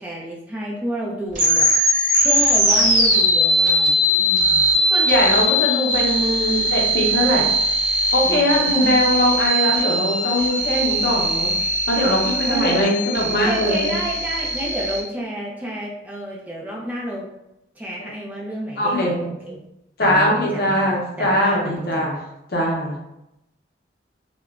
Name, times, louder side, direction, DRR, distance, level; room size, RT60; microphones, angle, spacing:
voice 1, 0.0-1.7 2.2-4.7 8.2-8.9 12.5-13.0 13.4-17.3 17.8-19.6 20.0-22.2, right 1 dB, 10° right, -4 dB, 0.3 m, -30 dB
sound 1, 1.3-15.0, equal, 45° right, 0.6 m, -20 dB
voice 2, 4.9-7.5 8.1-11.5 11.9-13.9 18.8-19.6 20.0-22.2 22.5-23.0, left 1 dB, 55° left, -2 dB, 0.6 m, -21 dB
2.8 x 2.1 x 2.3 m, 0.86 s
head